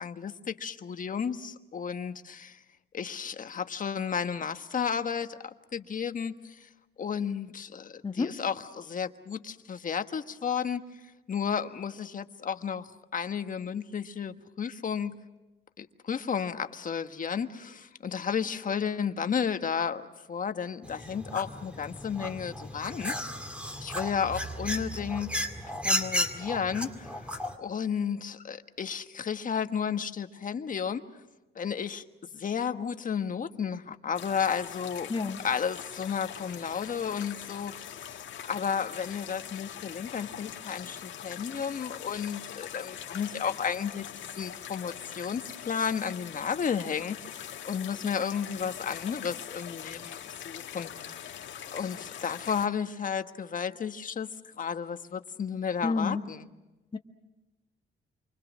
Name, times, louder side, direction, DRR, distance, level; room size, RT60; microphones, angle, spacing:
voice 1, 0.0-2.6 2.9-6.7 7.0-10.8 11.3-15.1 15.8-23.1 23.8-31.0 31.5-32.0 32.3-35.1 35.4-54.3 54.6-56.5, left 7 dB, 40° left, 8 dB, 1.4 m, -33 dB
voice 2, 8.0-8.3 35.1-35.4 55.8-56.2 56.9-57.0, left 4 dB, 25° left, 4 dB, 1.5 m, -29 dB
sound 1, 20.8-27.6, equal, 5° right, 2.3 m, -34 dB
sound 2, 34.1-52.7, left 10 dB, 70° left, 1.8 m, -43 dB
28.5 x 24.5 x 6.2 m, 1.0 s
cardioid pair, 90°, 20 cm